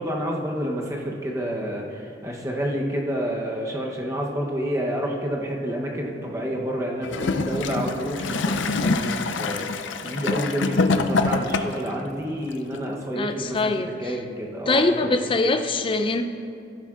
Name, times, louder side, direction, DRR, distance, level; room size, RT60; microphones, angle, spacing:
voice 1, 0.0-15.3, equal, 15° right, -2 dB, 0.8 m, -29 dB
Gurgling / Toilet flush, 7.0-11.9 12.7-12.8, left 3 dB, 85° left, 0.5 m, -25 dB
voice 2, 13.1-14.2 14.7-16.2, left 2 dB, 30° left, 7 dB, 0.4 m, -23 dB
14.5 x 10.5 x 2.4 m, 2.4 s
head